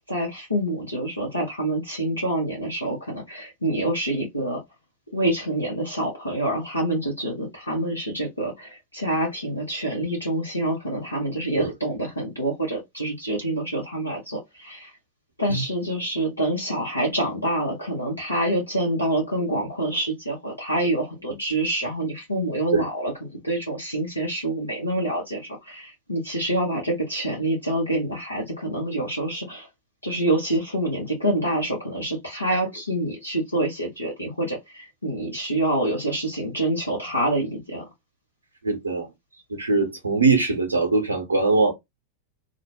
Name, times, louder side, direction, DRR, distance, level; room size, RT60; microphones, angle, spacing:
voice 1, 0.1-4.6 5.1-14.9 15.4-29.7 30.0-37.8, right 1 dB, 85° left, 0.7 m, -26 dB
voice 2, 38.6-39.1 39.5-41.7, right 3 dB, 75° right, 0.7 m, -21 dB
2.5 x 2.1 x 2.9 m
figure-of-eight pair, 90°, 0 cm